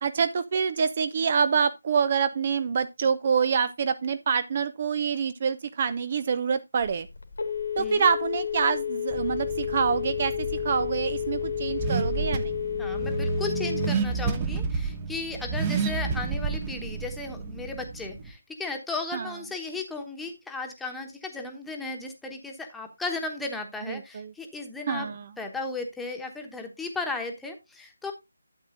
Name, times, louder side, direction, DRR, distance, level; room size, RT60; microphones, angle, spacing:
voice 1, 0.0-7.1 7.8-12.5 19.1-19.3 23.9-24.3 24.9-25.3, right 6 dB, 35° right, 0.4 m, -26 dB
Telephone, 6.8-14.2, left 9 dB, 65° left, 1.6 m, -31 dB
Car / Accelerating revving vroom, 9.1-18.3, right 5 dB, 20° right, 0.8 m, -31 dB
voice 2, 12.8-28.1, left 3 dB, 5° left, 1.1 m, -35 dB
12.0 x 7.7 x 2.5 m
figure-of-eight pair, 155°, 0 cm